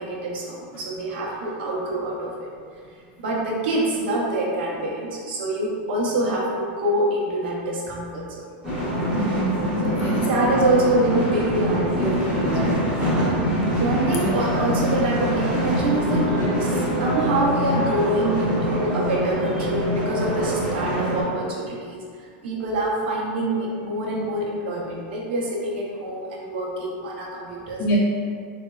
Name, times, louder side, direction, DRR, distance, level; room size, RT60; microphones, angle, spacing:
voice 1, 0.0-2.5 3.2-8.2 8.7-8.9 9.8-12.9 13.8-22.0 22.4-27.8, right 1 dB, 75° right, -3 dB, 0.6 m, -25 dB
sound 1, 8.6-21.2, equal, 10° right, 0.8 m, -24 dB
voice 2, 9.1-10.3 14.2-14.3 27.8-28.0, equal, 35° left, -4 dB, 0.5 m, -26 dB
3.2 x 2.1 x 2.2 m, 2.2 s
supercardioid pair, 170°, 6 cm